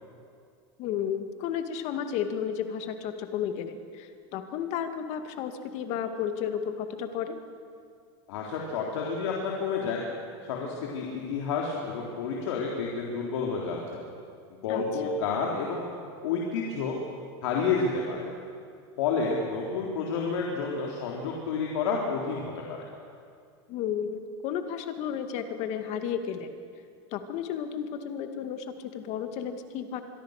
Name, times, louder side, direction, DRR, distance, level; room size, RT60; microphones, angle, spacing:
voice 1, 0.8-7.4 14.7-14.8 23.7-26.5 27.1-30.0, left 8 dB, 50° left, 7 dB, 2.2 m, -33 dB
voice 2, 8.3-10.0 10.4-14.0 14.6-15.8 16.2-17.0 17.4-18.3 19.0-22.8, left 5 dB, 80° left, -2 dB, 3.7 m, -30 dB
25.5 x 23.0 x 6.7 m, 2.3 s
supercardioid pair, 140°, 14 cm